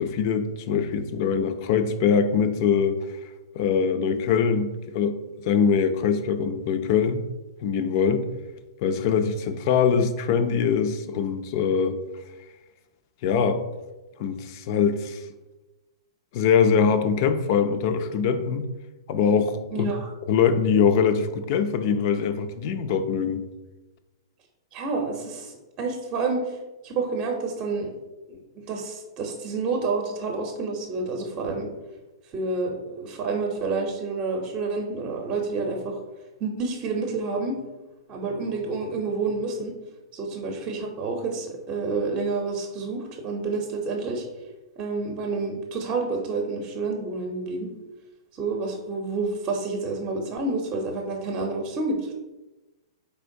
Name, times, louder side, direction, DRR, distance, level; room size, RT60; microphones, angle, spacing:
voice 1, 0.0-3.0 3.5-7.2 7.6-8.3 8.8-12.0 13.2-13.6 14.2-15.2 16.3-18.7 19.1-19.9 20.3-23.4, left 6 dB, 50° left, 9 dB, 0.4 m, -23 dB
voice 2, 19.7-20.1 24.7-26.6 26.8-27.9 28.7-31.7 32.3-36.0 36.4-37.6 38.1-39.7 40.1-44.2 44.8-47.7 48.4-52.1, right 3 dB, 30° right, 2 dB, 0.7 m, -29 dB
4.4 x 3.4 x 2.6 m, 1.1 s
hypercardioid pair, 120°, 3 cm